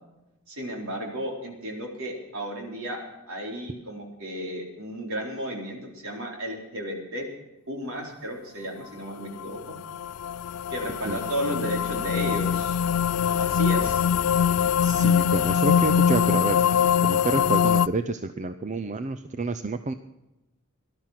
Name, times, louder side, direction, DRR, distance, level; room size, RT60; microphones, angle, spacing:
voice 1, 0.5-7.3 7.7-9.8 10.7-12.8 13.4-14.0, equal, 65° right, 0 dB, 4.2 m, -33 dB
sound 1, 9.4-17.9, left 8 dB, 85° left, 0.4 m, -23 dB
voice 2, 14.8-16.6 17.0-19.9, right 3 dB, 35° right, 10 dB, 0.6 m, -29 dB
18.0 x 12.0 x 5.9 m, 0.99 s
head